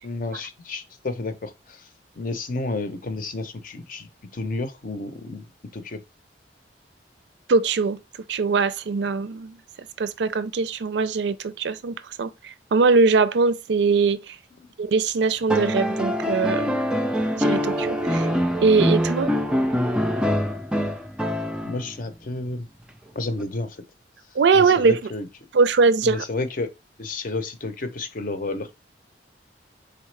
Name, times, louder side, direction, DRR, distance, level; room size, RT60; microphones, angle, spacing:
voice 1, 0.0-1.9 2.2-5.4 5.7-6.0 14.6-14.7 21.6-22.7 23.1-23.8 24.5-25.3 26.0-26.7 27.0-28.7, left 2 dB, 50° left, 0.6 m, -31 dB
voice 2, 7.5-8.0 8.3-9.6 10.0-14.4 14.8-16.8 17.4-18.3 18.6-19.3 24.4-25.0 25.5-26.2, right 4 dB, 70° right, 0.4 m, -21 dB
sound 1, 15.5-21.9 23.4-23.5, equal, 5° right, 0.4 m, -24 dB
4.0 x 3.6 x 3.2 m
head